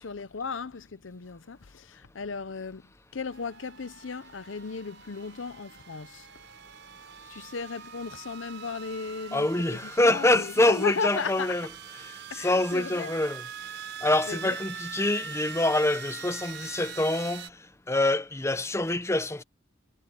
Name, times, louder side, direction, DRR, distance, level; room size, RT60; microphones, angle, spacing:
voice 1, 0.0-6.3 7.3-11.6 12.3-13.1 14.3-14.6, left 5 dB, 80° left, 0.7 m, -36 dB
sound 1, 3.3-17.5, right 7 dB, 65° right, 7.9 m, -43 dB
voice 2, 9.3-11.7 12.4-13.4 14.0-17.5 17.9-19.4, left 2 dB, 15° left, 0.8 m, -25 dB
head